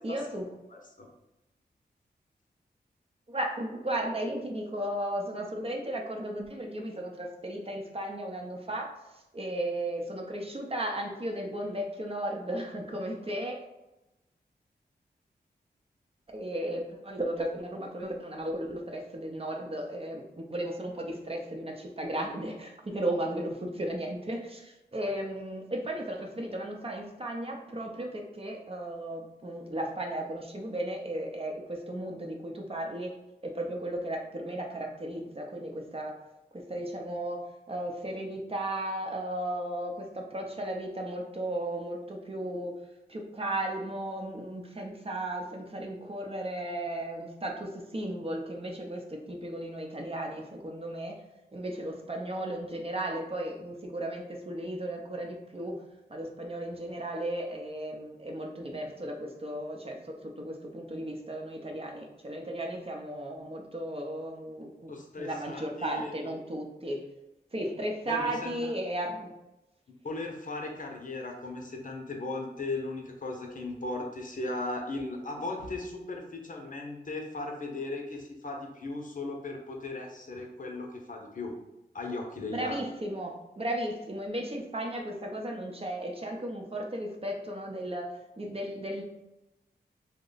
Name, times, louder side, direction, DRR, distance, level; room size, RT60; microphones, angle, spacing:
voice 1, 0.0-0.5 3.3-8.9 9.3-13.6 16.3-33.1 33.4-36.1 36.5-37.4 37.7-42.7 43.1-51.1 51.5-55.8 56.1-67.1 67.5-69.3 82.5-89.0, right 1 dB, 35° right, 1 dB, 0.7 m, -35 dB
voice 2, 0.7-1.1 64.9-66.4 68.0-68.7 70.0-81.5 81.9-82.8, left 2 dB, 50° left, 1 dB, 0.7 m, -37 dB
3.0 x 2.2 x 3.9 m, 0.94 s
cardioid pair, 45°, 17 cm